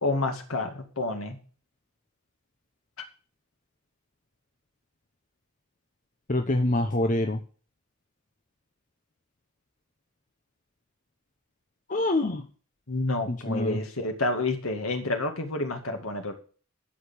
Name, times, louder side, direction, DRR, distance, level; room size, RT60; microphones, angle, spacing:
voice 1, 0.0-1.4 12.9-16.3, left 2 dB, 75° left, 5 dB, 2.3 m, -29 dB
voice 2, 6.3-7.4 11.9-12.4 13.3-13.8, left 1 dB, 40° left, 5 dB, 1.0 m, -25 dB
13.0 x 5.3 x 8.5 m, 0.40 s
head